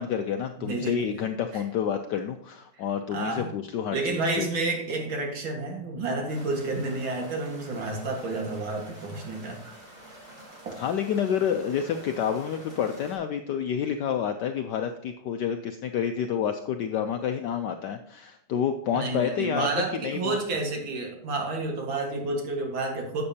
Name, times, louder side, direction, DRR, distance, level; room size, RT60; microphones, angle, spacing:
voice 1, 0.0-4.5 10.1-10.4 10.8-19.7 20.0-20.4, left 8 dB, 75° left, 7 dB, 1.0 m, -29 dB
voice 2, 0.6-1.1 1.5-1.6 3.1-3.5 3.9-9.6 18.9-23.2, right 3 dB, 65° right, 1 dB, 2.4 m, -30 dB
sound 1, 6.3-13.2, right 1 dB, 30° right, 4.4 m, -48 dB
11.5 x 7.6 x 2.8 m, 0.74 s
omnidirectional pair, 2.4 m